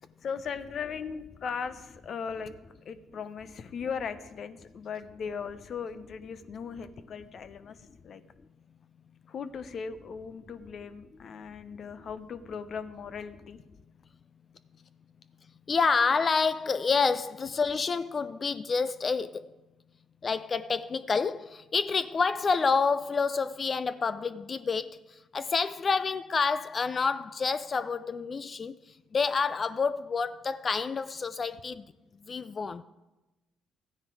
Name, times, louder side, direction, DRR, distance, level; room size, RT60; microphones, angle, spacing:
voice 1, 0.2-2.5 2.8-8.2 9.3-13.6, left 6 dB, 55° left, 0.8 m, -38 dB
voice 2, 15.7-19.5 20.2-31.8 32.2-32.8, left 5 dB, 40° left, 0.4 m, -28 dB
13.5 x 9.5 x 4.7 m
supercardioid pair, 65°, 0 cm